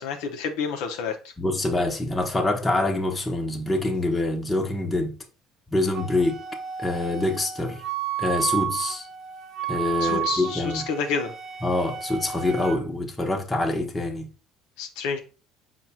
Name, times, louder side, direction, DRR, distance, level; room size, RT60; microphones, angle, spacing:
voice 1, 0.0-1.3 10.0-11.3 14.8-15.2, left 5 dB, 75° left, 0.6 m, -29 dB
voice 2, 1.4-5.1 5.7-6.4 6.8-7.8 8.2-9.1 9.7-10.8 11.6-14.3, left 2 dB, 20° left, 0.9 m, -25 dB
Wind instrument woodwind instrument, 5.9-12.8, right 9 dB, 45° right, 0.9 m, -32 dB
4.7 x 2.3 x 4.1 m
hypercardioid pair, 75°, 0 cm